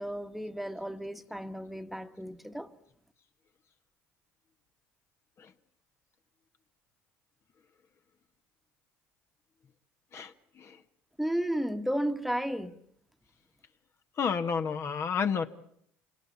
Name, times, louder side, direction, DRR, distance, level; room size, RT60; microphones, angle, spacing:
voice 1, 0.0-2.7 11.2-12.8, equal, ahead, 1.4 m, -33 dB
voice 2, 10.1-10.8 14.2-15.5, left 6 dB, 45° left, 1.4 m, -31 dB
27.0 x 18.5 x 8.5 m
hypercardioid pair, 70°, 6 cm